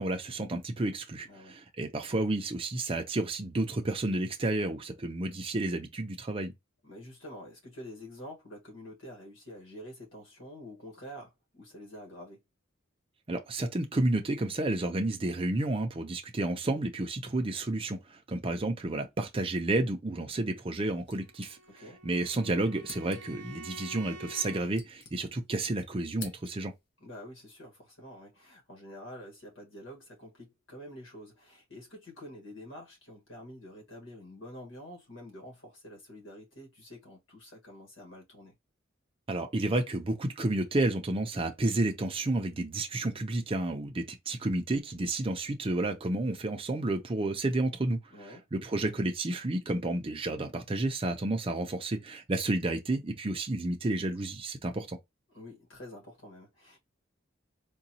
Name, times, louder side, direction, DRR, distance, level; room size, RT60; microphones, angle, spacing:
voice 1, 0.0-6.5 13.3-21.6 22.0-26.7 39.3-48.0 48.5-55.0, right 2 dB, 30° right, 0.5 m, -31 dB
voice 2, 6.8-12.4 21.7-22.0 27.0-38.6 48.1-48.4 55.3-56.8, equal, 85° left, 1.5 m, -47 dB
sound 1, 21.0-22.1 22.3-22.4 22.8-23.5 24.3-25.6 25.9-26.9, left 4 dB, 65° left, 0.9 m, -49 dB
Bowed string instrument, 21.2-24.7, right 2 dB, 65° right, 0.8 m, -48 dB
3.9 x 2.3 x 2.7 m
head